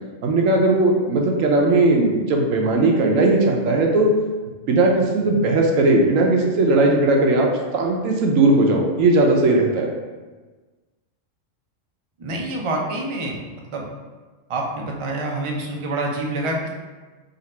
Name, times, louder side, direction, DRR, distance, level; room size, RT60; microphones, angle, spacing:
voice 1, 0.2-4.1 4.7-7.5 7.7-9.9, right 2 dB, 80° right, 0 dB, 1.0 m, -18 dB
voice 2, 12.2-13.4 13.7-13.9 14.5-16.7, right 2 dB, 55° right, 0 dB, 0.3 m, -26 dB
3.9 x 2.5 x 4.2 m, 1.3 s
omnidirectional pair, 1.4 m